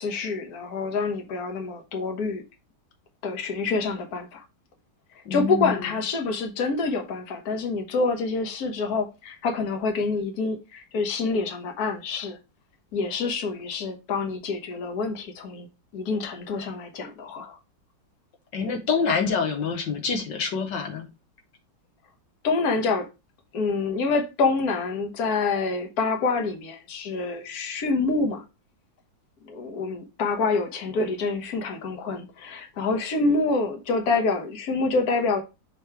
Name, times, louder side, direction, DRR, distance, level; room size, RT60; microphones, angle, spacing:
voice 1, 0.0-2.4 3.2-4.4 5.3-12.4 12.9-15.7 15.9-17.6 22.4-23.1 23.5-28.4 29.5-35.4, left 4 dB, 55° left, 1.5 m, -27 dB
voice 2, 5.3-6.0 18.5-21.1, left 5 dB, 75° left, 1.6 m, -26 dB
6.8 x 3.0 x 4.6 m
omnidirectional pair, 2.0 m